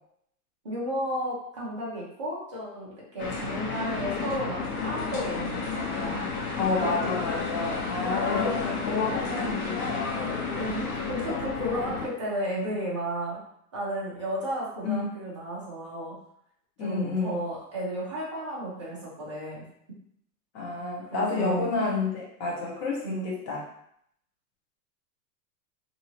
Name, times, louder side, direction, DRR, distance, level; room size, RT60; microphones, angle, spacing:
voice 1, 0.6-6.3 6.8-6.9 10.6-13.4 13.7-16.2 16.8-19.6 21.1-21.7 23.0-23.3, right 1 dB, 20° right, -7 dB, 0.3 m, -33 dB
sound 1, 3.2-12.1, left 4 dB, 65° left, 1.1 m, -31 dB
voice 2, 6.6-10.1 14.8-15.1 16.8-17.4 20.5-23.6, left 3 dB, 25° left, -4 dB, 0.7 m, -30 dB
2.7 x 2.7 x 2.8 m, 0.71 s
supercardioid pair, 160°, 48 cm